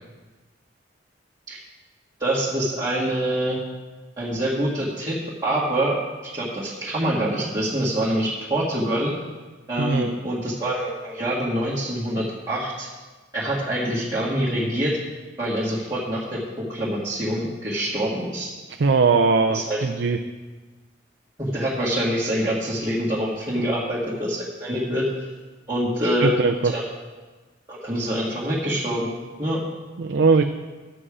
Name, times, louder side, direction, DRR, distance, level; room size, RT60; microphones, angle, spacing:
voice 1, 2.2-3.6 4.2-5.2 5.4-6.0 6.3-9.1 9.7-12.9 13.3-15.0 15.4-16.4 16.7-18.5 19.5-19.8 21.4-25.3 25.7-26.3 26.6-26.8 27.7-29.1 29.4-29.6, right 1 dB, 20° right, -9 dB, 1.8 m, -25 dB
voice 2, 9.8-10.1 18.8-20.2 26.0-26.7 30.0-30.4, right 4 dB, 65° right, 6 dB, 0.5 m, -20 dB
11.0 x 7.7 x 4.9 m, 1.3 s
head